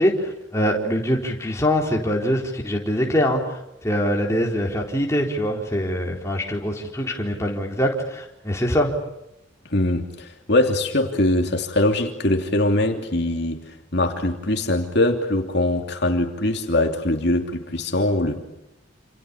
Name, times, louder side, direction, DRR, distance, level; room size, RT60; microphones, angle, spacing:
voice 1, 0.0-3.6 3.8-8.9, equal, 15° left, -1 dB, 4.2 m, -23 dB
voice 2, 9.7-18.4, left 1 dB, 55° left, 3 dB, 2.9 m, -22 dB
29.0 x 28.5 x 7.2 m, 0.88 s
head